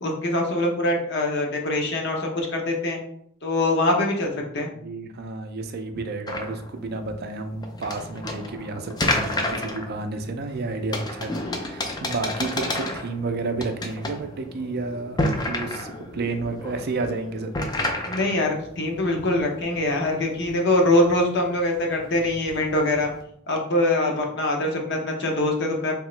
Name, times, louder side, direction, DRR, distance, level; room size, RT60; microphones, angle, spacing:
voice 1, 0.0-3.0 3.4-4.7 18.1-23.1 23.5-25.9, left 1 dB, 55° left, 1 dB, 0.8 m, -23 dB
voice 2, 4.7-15.2 15.5-17.5, right 3 dB, 50° right, 6 dB, 0.4 m, -31 dB
sound 1, 6.3-23.2, left 1 dB, 20° left, 0.4 m, -32 dB
3.6 x 2.9 x 3.1 m, 0.68 s
head